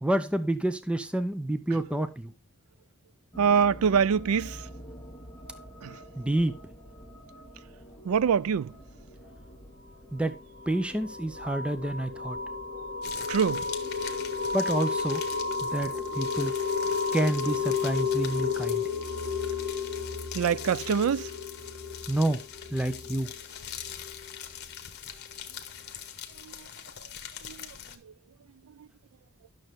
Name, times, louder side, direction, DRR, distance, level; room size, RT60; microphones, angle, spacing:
voice 1, 0.0-2.3 6.2-6.6 10.1-10.4 10.7-12.4 14.5-15.2 15.6-16.5 17.1-18.8 22.1-22.4 22.7-23.3, right 1 dB, 5° right, 0.5 m, -28 dB
sound 1, 3.3-14.7, equal, 15° left, 2.0 m, -48 dB
voice 2, 3.4-4.6 5.8-6.0 8.1-8.7 13.3-13.6 20.3-21.3 26.4-26.5 27.5-27.7, right 7 dB, 85° right, 0.4 m, -24 dB
sound 2, 10.2-24.6, left 4 dB, 50° right, 1.8 m, -32 dB
sound 3, 13.0-28.0, left 9 dB, 50° left, 1.3 m, -43 dB
11.5 x 6.6 x 3.6 m
head